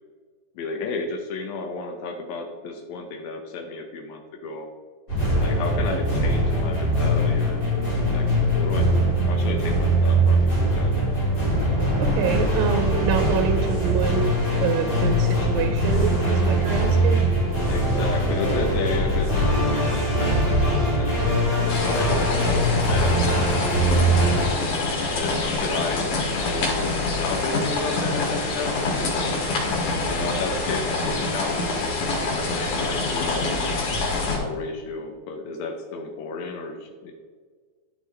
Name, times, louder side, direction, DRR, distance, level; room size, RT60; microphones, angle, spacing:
voice 1, 0.5-4.7 5.4-10.9 17.7-24.5 25.1-29.3 30.1-33.7 34.3-37.1, left 3 dB, 80° left, 2 dB, 1.6 m, -33 dB
sound 1, 5.1-24.5, right 1 dB, 20° left, 1.6 m, -22 dB
voice 2, 12.0-17.3, right 7 dB, 80° right, 6 dB, 2.3 m, -26 dB
sound 2, 21.7-34.4, left 3 dB, 60° left, 2.8 m, -26 dB
11.0 x 5.2 x 3.3 m, 1.5 s
omnidirectional pair, 4.2 m